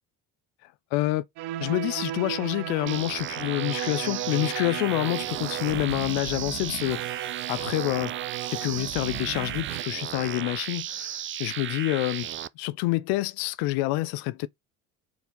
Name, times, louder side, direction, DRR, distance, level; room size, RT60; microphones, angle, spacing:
voice 1, 0.9-1.3 1.6-8.1 8.5-12.3 12.6-14.5, left 18 dB, 85° left, 0.6 m, -28 dB
sound 1, 1.4-9.8, right 14 dB, 75° right, 0.8 m, -35 dB
sound 2, 2.9-12.5, right 11 dB, 30° right, 0.4 m, -35 dB
4.6 x 4.2 x 5.2 m
supercardioid pair, 85°, 39 cm